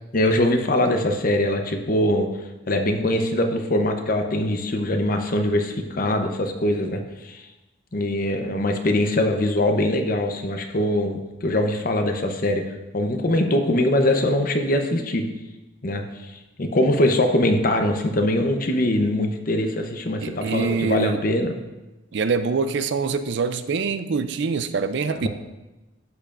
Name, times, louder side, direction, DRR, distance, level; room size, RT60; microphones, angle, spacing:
voice 1, 0.1-2.3 2.7-7.4 7.9-12.6 12.9-15.3 15.8-21.5 25.1-25.3, left 1 dB, 45° left, 5 dB, 0.8 m, -22 dB
voice 2, 20.2-21.2 22.1-25.3, right 4 dB, 60° right, 11 dB, 0.4 m, -24 dB
12.0 x 6.9 x 2.5 m, 1.1 s
head